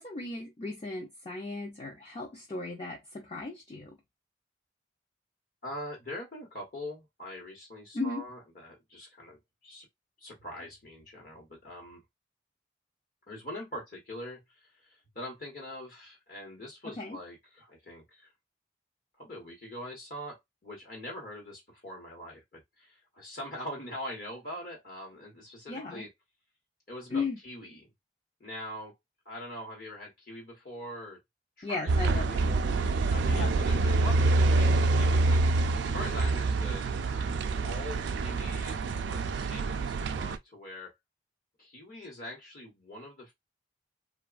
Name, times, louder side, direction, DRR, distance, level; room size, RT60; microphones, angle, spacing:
voice 1, 0.0-4.0 7.9-8.3 16.8-17.2 25.7-26.1 27.1-27.4 31.6-32.8 33.3-33.6, left 3 dB, 30° left, 0.5 m, -36 dB
voice 2, 5.6-9.9 10.2-12.0 13.3-18.3 19.2-26.1 26.9-27.9 28.4-28.9 29.2-31.2 31.6-32.5 33.1-35.4 35.8-37.3 37.6-40.9 41.6-43.3, left 1 dB, 50° left, 1.0 m, -43 dB
sound 1, 31.9-40.4, right 3 dB, 75° right, 0.3 m, -26 dB
3.0 x 2.2 x 2.4 m
head